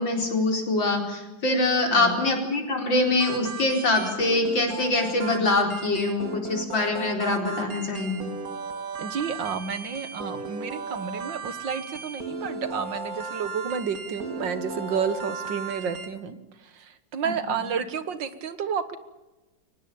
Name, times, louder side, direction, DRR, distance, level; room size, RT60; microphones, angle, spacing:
voice 1, 0.0-8.3 17.2-17.3, left 2 dB, 85° left, 3 dB, 5.2 m, -24 dB
voice 2, 1.9-2.2 9.0-16.4 16.8-19.0, right 6 dB, 75° right, 13 dB, 2.2 m, -31 dB
sound 1, 3.2-16.1, right 3 dB, 50° right, 2.4 m, -36 dB
23.5 x 19.5 x 8.7 m, 1.1 s
omnidirectional pair, 2.0 m